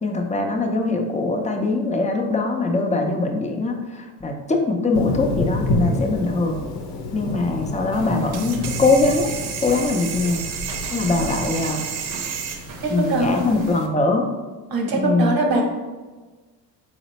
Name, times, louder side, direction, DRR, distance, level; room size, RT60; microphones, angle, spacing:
voice 1, 0.0-6.6 7.1-9.3 9.6-10.4 10.9-11.8 12.9-14.3 14.9-15.3, left 3 dB, 15° left, 2 dB, 0.5 m, -22 dB
Thunder, 4.9-13.7, left 2 dB, 60° left, 0.8 m, -29 dB
sound 1, 7.9-13.9, right 7 dB, 85° right, 0.6 m, -32 dB
voice 2, 12.8-13.6 14.7-15.6, right 2 dB, 50° right, 2 dB, 1.0 m, -22 dB
3.8 x 2.1 x 4.1 m, 1.3 s
supercardioid pair, 75°, 46 cm